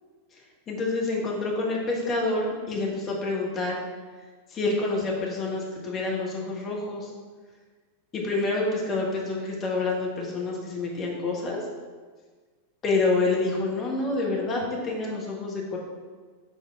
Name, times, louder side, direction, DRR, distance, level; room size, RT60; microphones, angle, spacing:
voice 1, 0.7-3.8 4.5-7.1 8.1-11.6 12.8-15.8, left 3 dB, 25° left, -2 dB, 1.5 m, -27 dB
6.4 x 3.8 x 4.7 m, 1.5 s
figure-of-eight pair, 90°, 0 cm